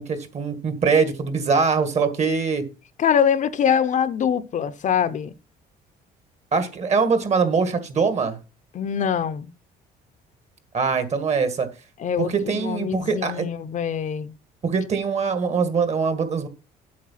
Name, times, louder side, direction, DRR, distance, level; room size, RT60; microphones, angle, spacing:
voice 1, 0.0-2.6 6.5-8.4 10.7-11.7 12.2-13.5 14.6-16.5, right 5 dB, 40° right, 1.9 m, -22 dB
voice 2, 3.0-5.3 8.7-9.5 12.0-14.3, left 8 dB, 50° left, 0.7 m, -23 dB
8.6 x 6.7 x 5.7 m
cardioid pair, 110°, 17 cm